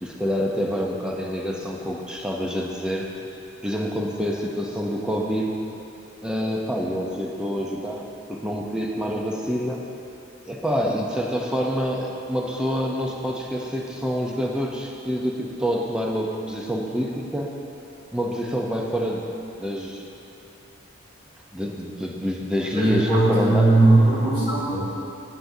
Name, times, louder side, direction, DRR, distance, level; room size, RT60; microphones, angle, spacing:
voice 1, 0.0-3.1 3.6-5.6 6.2-9.8 10.5-17.6 18.1-19.3 19.6-20.0 21.5-23.8, equal, 5° right, -1 dB, 0.6 m, -27 dB
voice 2, 22.7-24.8, right 2 dB, 25° right, -10 dB, 2.1 m, -18 dB
11.5 x 8.2 x 2.7 m, 2.7 s
head